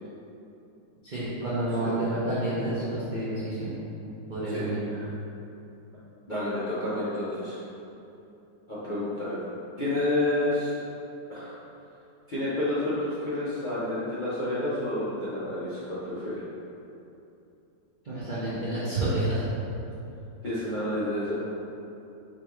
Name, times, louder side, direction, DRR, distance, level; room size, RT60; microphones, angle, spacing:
voice 1, 1.0-3.8 4.3-4.9 18.0-19.4, right 1 dB, 60° right, -11 dB, 0.5 m, -29 dB
voice 2, 4.5-5.0 6.3-7.6 8.7-9.4 9.8-10.7 11.3-11.5 12.3-16.4 20.4-21.4, left 1 dB, 50° left, -12 dB, 0.5 m, -29 dB
4.7 x 3.5 x 3.0 m, 2.8 s
omnidirectional pair, 2.0 m